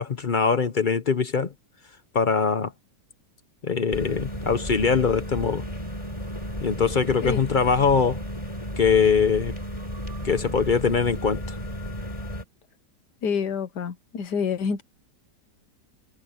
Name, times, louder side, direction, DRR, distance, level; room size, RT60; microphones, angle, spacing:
voice 1, 0.0-1.5 2.1-2.7 3.6-5.6 6.6-8.2 8.8-9.5 10.2-11.6, left 5 dB, 45° left, 0.6 m, -22 dB
sound 1, 3.9-12.4, equal, 20° left, 4.0 m, -33 dB
voice 2, 13.2-14.8, left 6 dB, 75° left, 1.8 m, -27 dB
omnidirectional pair, 1.8 m